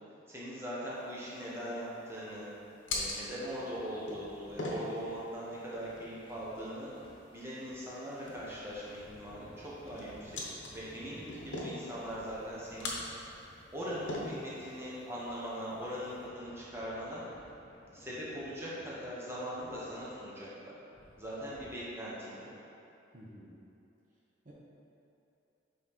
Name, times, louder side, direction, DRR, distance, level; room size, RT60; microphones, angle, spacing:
voice 1, 0.3-2.5 2.9-6.9 7.3-10.4 10.7-12.9 13.7-17.2 17.9-20.7 21.2-22.5, equal, 15° right, -8 dB, 1.1 m, -41 dB
sound 1, 0.9-16.3, left 2 dB, 75° left, 1.0 m, -44 dB
sound 2, 3.3-21.8, equal, 30° left, 1.0 m, -59 dB
voice 2, 11.1-11.5 23.1-23.6 24.4-24.5, equal, 40° right, -6 dB, 0.8 m, -52 dB
5.1 x 4.1 x 5.2 m, 2.8 s
head